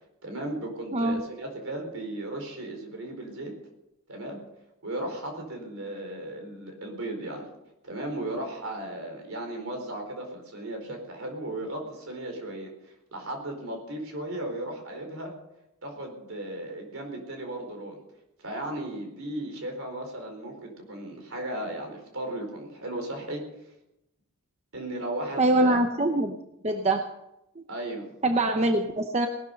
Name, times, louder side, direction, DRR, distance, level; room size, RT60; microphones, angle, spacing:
voice 1, 0.2-3.5 4.1-4.4 4.8-7.5 7.8-15.3 15.8-18.0 18.4-23.4 24.7-25.8 27.7-28.1, right 1 dB, 65° right, 3 dB, 4.5 m, -36 dB
voice 2, 25.4-26.4 26.6-27.0 27.6-27.7 28.2-29.3, right 2 dB, 30° right, 5 dB, 0.9 m, -23 dB
18.5 x 12.5 x 5.4 m, 0.86 s
head